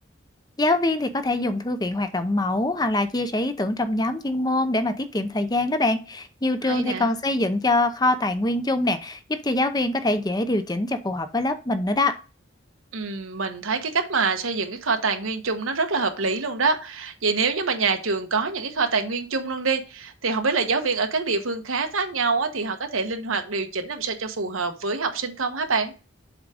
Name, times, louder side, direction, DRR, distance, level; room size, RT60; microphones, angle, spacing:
voice 1, 0.6-12.1, left 2 dB, 20° left, 10 dB, 0.6 m, -24 dB
voice 2, 6.7-7.1 12.9-25.9, right 4 dB, 90° right, 6 dB, 1.2 m, -25 dB
7.3 x 3.7 x 4.9 m, 0.32 s
head